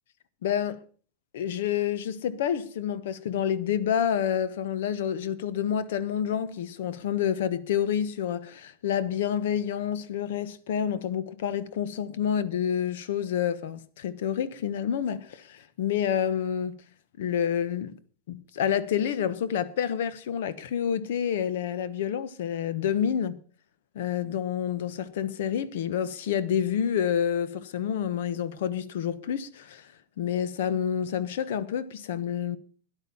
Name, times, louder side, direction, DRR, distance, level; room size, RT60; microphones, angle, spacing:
voice 1, 0.4-0.8 1.3-16.8 17.2-18.0 18.3-23.4 23.9-29.9 30.2-32.6, left 9 dB, 70° left, 1.2 m, -28 dB
13.0 x 10.5 x 5.5 m
supercardioid pair, 165°, 0 cm